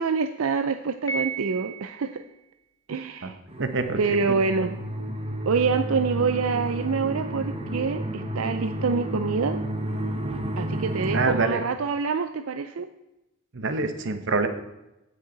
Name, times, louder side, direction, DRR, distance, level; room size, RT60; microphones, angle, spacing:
voice 1, 0.0-2.2 2.9-3.4 4.0-4.8 5.5-9.6 10.6-12.9, right 5 dB, 85° right, 9 dB, 0.5 m, -26 dB
Piano, 1.1-2.2, right 4 dB, 20° left, 1.4 m, -33 dB
sound 1, 3.5-11.3, right 1 dB, 30° right, 1.0 m, -31 dB
voice 2, 3.6-4.2 11.1-11.6 13.5-14.5, right 3 dB, 60° right, 8 dB, 1.0 m, -26 dB
15.5 x 6.5 x 4.0 m, 0.95 s
head